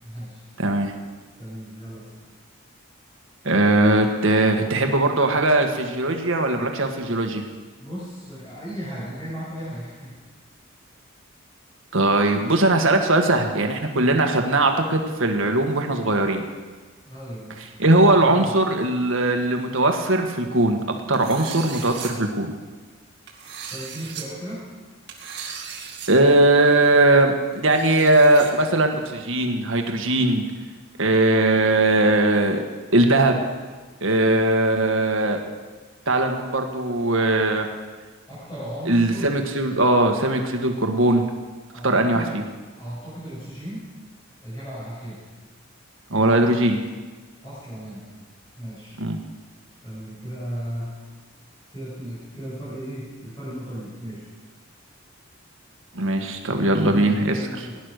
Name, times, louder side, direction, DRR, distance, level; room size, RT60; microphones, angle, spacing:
voice 1, 0.0-0.4 1.4-2.1 7.8-10.2 17.0-17.7 18.2-18.5 23.7-24.7 38.3-39.3 41.7-42.4 42.8-43.9 44.4-45.2 47.4-48.1 48.6-49.0 49.8-50.9 51.7-54.3 56.5-57.8, equal, 20° left, -10 dB, 6.3 m, -35 dB
voice 2, 0.6-0.9 3.4-7.4 11.9-16.4 17.8-20.8 21.1-22.5 26.1-30.4 31.0-32.6 32.9-33.4 34.0-35.4 36.1-37.6 38.9-41.2 41.8-42.2 46.1-46.8 49.0-49.2 55.9-57.4, right 2 dB, 70° right, 4 dB, 1.6 m, -19 dB
sound 1, 21.1-22.1 23.3-24.2 25.1-26.1 26.4-26.5 27.5-28.5, right 7 dB, 50° right, 2.4 m, -37 dB
18.0 x 10.5 x 6.6 m, 1.4 s
head